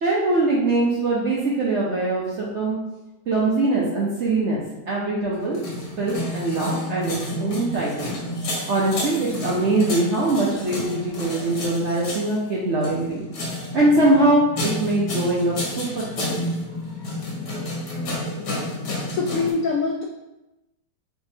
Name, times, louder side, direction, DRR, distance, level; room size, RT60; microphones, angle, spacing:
voice 1, 0.0-2.8 3.3-5.6 6.0-8.2 8.7-13.2 13.7-16.4, right 2 dB, 65° right, -4 dB, 0.7 m, -22 dB
sound 1, 5.4-19.5, left 1 dB, 65° left, 1.7 m, -30 dB
voice 2, 19.1-20.0, left 4 dB, 85° left, 0 dB, 0.7 m, -24 dB
4.9 x 3.5 x 2.7 m, 0.97 s
omnidirectional pair, 1.9 m